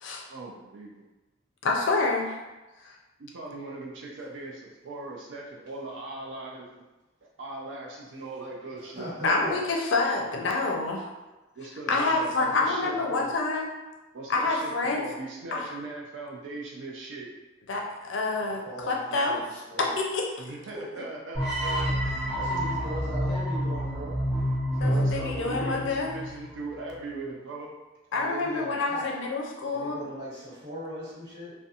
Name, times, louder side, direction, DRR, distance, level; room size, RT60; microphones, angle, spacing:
voice 1, 0.3-1.0 3.2-6.8 7.4-9.1 11.6-13.3 14.1-17.3 20.4-22.3 24.8-27.7, right 2 dB, 75° right, -2 dB, 0.4 m, -39 dB
voice 2, 1.6-2.4 9.2-11.1 11.9-13.7 14.3-15.0 15.5-15.7 17.7-19.3 19.8-20.3 24.8-26.1 28.1-30.0, left 3 dB, 75° left, 0 dB, 0.4 m, -27 dB
voice 3, 8.8-9.6 11.8-13.1 18.4-19.9 20.7-21.0 22.3-24.2 24.7-25.9 28.1-29.1 29.6-31.5, equal, 40° right, -11 dB, 1.5 m, -39 dB
sound 1, 21.3-26.4, equal, ahead, 0.7 m, -28 dB
2.5 x 2.1 x 2.7 m, 1.1 s
head